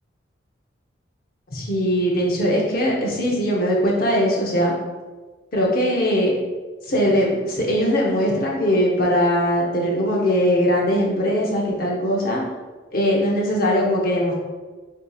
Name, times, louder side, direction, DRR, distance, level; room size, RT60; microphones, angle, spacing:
voice 1, 1.5-4.7 5.5-6.3 6.8-12.4 12.9-14.3, equal, 50° left, -2 dB, 0.8 m, -20 dB
7.6 x 2.8 x 2.4 m, 1.3 s
head